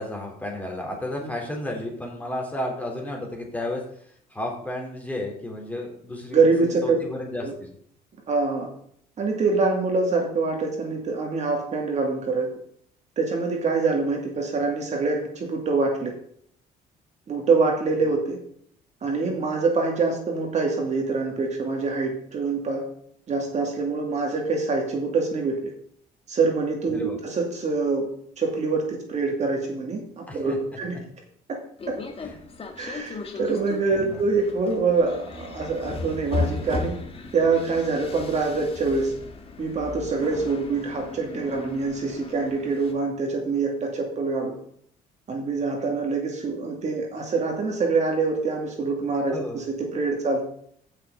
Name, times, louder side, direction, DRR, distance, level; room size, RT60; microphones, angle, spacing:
voice 1, 0.0-3.8 4.3-7.7 26.9-27.2 30.3-30.6 32.3-32.4 34.0-34.2 49.3-49.6, left 1 dB, 10° left, 0 dB, 3.4 m, -32 dB
voice 2, 6.3-7.0 7.4-7.5 8.3-8.7 9.2-12.5 13.2-16.1 17.3-18.4 19.0-22.8 23.3-25.7 26.3-28.1 28.4-31.0 31.5-31.6 31.9-32.0 32.8-37.0 37.3-39.1 39.6-44.6 45.3-50.4, right 4 dB, 40° right, 1 dB, 2.3 m, -25 dB
sound 1, 31.8-42.9, left 3 dB, 35° left, 1.7 m, -35 dB
15.0 x 6.4 x 3.8 m, 0.65 s
cardioid pair, 110°, 17 cm